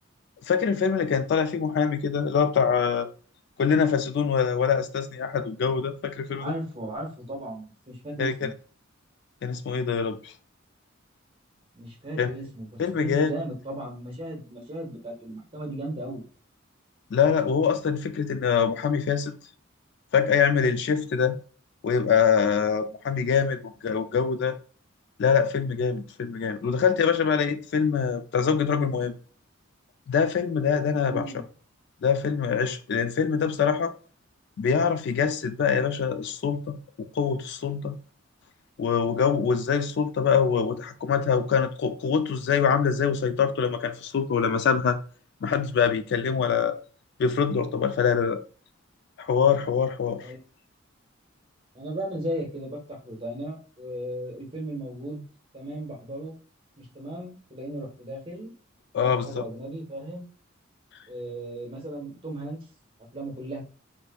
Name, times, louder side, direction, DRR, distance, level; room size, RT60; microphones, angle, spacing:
voice 1, 0.5-3.1 3.6-6.5 8.2-8.5 9.4-10.3 12.2-12.3 12.8-13.3 17.1-19.4 20.1-21.4 21.8-24.6 25.2-29.1 30.1-31.3 32.0-33.9 34.6-36.8 37.2-38.0 38.8-45.0 45.4-46.7 47.2-48.4 49.2-50.2 58.9-59.4, left 6 dB, 60° left, 0.3 m, -24 dB
voice 2, 6.3-8.5 11.7-16.2 31.0-31.4 50.2-50.4 51.7-55.2 55.5-56.3 56.8-58.5 59.0-60.2 61.1-62.6 63.1-63.6, right 1 dB, 25° right, 1.1 m, -36 dB
4.1 x 2.6 x 2.2 m
head